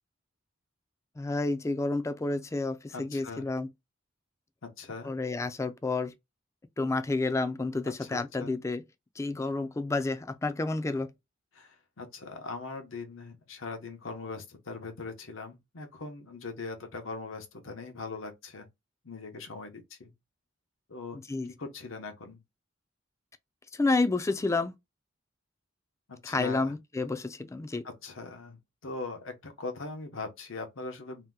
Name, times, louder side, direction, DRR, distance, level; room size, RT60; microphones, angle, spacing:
voice 1, 1.2-3.7 5.0-6.1 6.8-8.8 9.2-11.1 21.3-21.5 23.7-24.7 26.2-27.8, left 3 dB, 15° left, 0.3 m, -30 dB
voice 2, 2.9-3.5 4.6-5.1 8.0-8.5 10.9-11.0 11.5-18.7 19.0-20.1 20.9-21.2 21.5-22.4 26.1-26.8 27.8-31.3, left 3 dB, 90° left, 0.8 m, -41 dB
2.8 x 2.2 x 3.5 m
head